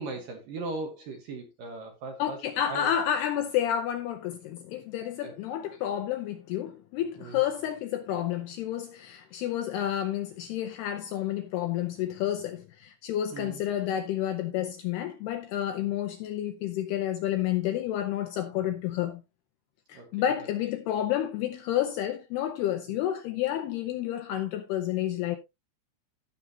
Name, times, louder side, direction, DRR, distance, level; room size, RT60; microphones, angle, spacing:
voice 1, 0.0-2.4 2.7-2.9 5.2-5.3 7.2-7.4 13.3-13.6 19.9-20.3, right 3 dB, 65° right, 2.4 m, -38 dB
voice 2, 2.2-19.2 19.9-25.4, left 11 dB, 80° left, 2.4 m, -30 dB
15.5 x 6.2 x 2.8 m
omnidirectional pair, 5.4 m